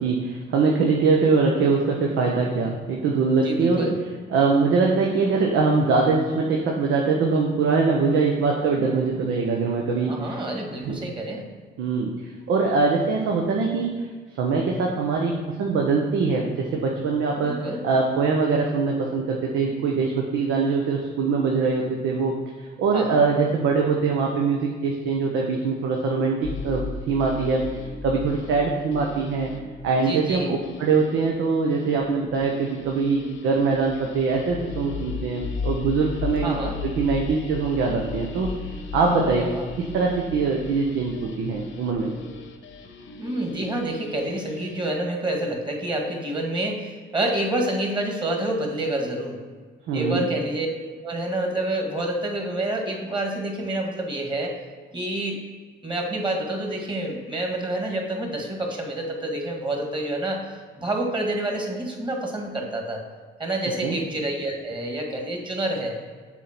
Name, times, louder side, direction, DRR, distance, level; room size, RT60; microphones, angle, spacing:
voice 1, 0.0-3.9 4.3-10.4 10.8-11.0 11.8-12.1 12.5-13.9 14.3-22.4 22.8-27.6 28.0-29.5 29.8-36.6 36.8-38.5 38.9-39.4 39.8-42.1 49.9-50.3 63.8-64.0, right 4 dB, 90° right, 0 dB, 0.9 m, -23 dB
voice 2, 3.4-4.0 10.0-11.5 17.4-17.8 22.9-23.3 30.0-30.6 36.3-36.7 39.2-39.7 43.2-49.4 49.9-50.7 51.0-54.5 54.9-55.4 55.8-60.5 60.7-63.0 63.4-66.0, right 1 dB, 25° right, 1 dB, 1.8 m, -28 dB
sound 1, 26.4-44.9, left 5 dB, 75° left, 1.0 m, -36 dB
7.2 x 4.3 x 6.0 m, 1.5 s
cardioid pair, 90°, 20 cm